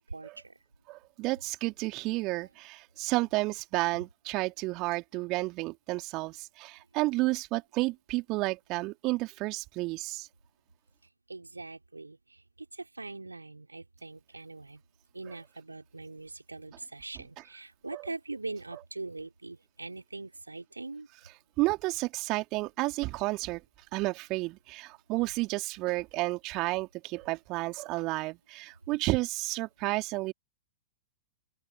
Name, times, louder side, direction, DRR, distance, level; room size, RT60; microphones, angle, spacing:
voice 1, 0.1-0.5 11.3-12.4 12.7-14.8 15.1-21.1, right 3 dB, 80° right, 4.8 m, -42 dB
voice 2, 0.9-10.3 17.9-18.0 21.6-23.6 23.9-30.3, right 22 dB, 35° right, 3.2 m, -31 dB
open air
figure-of-eight pair, 100°, 0 cm